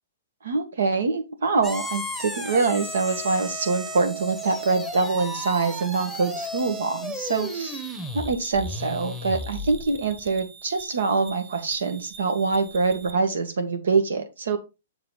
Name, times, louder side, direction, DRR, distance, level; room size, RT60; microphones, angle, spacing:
voice 1, 0.4-7.8 8.1-14.6, right 4 dB, 90° right, 8 dB, 1.7 m, -25 dB
sound 1, 1.6-13.1, equal, 5° right, 1.0 m, -35 dB
6.8 x 4.8 x 3.9 m, 0.26 s
hypercardioid pair, 160°, 0 cm